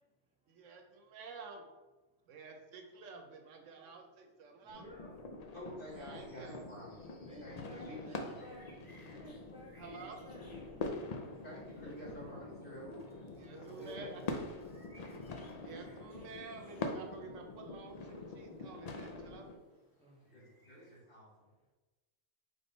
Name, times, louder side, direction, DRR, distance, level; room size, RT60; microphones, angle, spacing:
voice 1, 0.5-1.7 2.3-4.8 5.9-6.6 7.9-8.2 9.8-10.2 13.3-14.4 15.5-19.5, right 4 dB, 70° right, 4 dB, 1.0 m, -50 dB
voice 2, 4.6-5.2 7.3-8.7 9.1-11.4 12.1-12.2 13.4-13.5 15.1-15.4 20.0-20.4, right 1 dB, 10° right, -3 dB, 0.4 m, -56 dB
sound 1, 4.7-19.6, left 3 dB, 85° left, 0.3 m, -45 dB
voice 3, 5.5-7.0 7.4-8.4 11.3-13.0 13.5-14.4 20.2-21.5, equal, 45° left, -6 dB, 1.5 m, -50 dB
sound 2, 5.8-21.0, equal, 20° left, 0.8 m, -67 dB
sound 3, 7.6-16.1, right 1 dB, 25° right, 1.2 m, -62 dB
3.7 x 3.6 x 3.9 m, 1.2 s
omnidirectional pair, 1.3 m